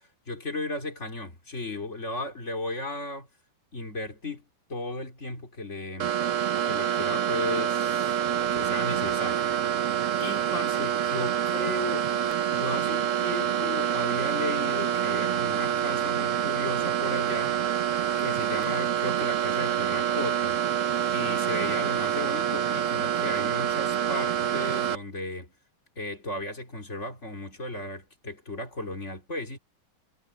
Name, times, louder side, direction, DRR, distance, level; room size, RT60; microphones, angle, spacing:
voice 1, 0.0-3.3 3.7-4.4 4.7-6.1 6.6-8.2 8.5-9.5 10.2-12.1 12.5-17.6 18.2-20.6 21.1-25.5 25.9-29.6, left 2 dB, 30° left, 3.4 m, -35 dB
sound 1, 6.0-25.0, right 9 dB, 80° right, 0.7 m, -27 dB
omnidirectional pair, 2.3 m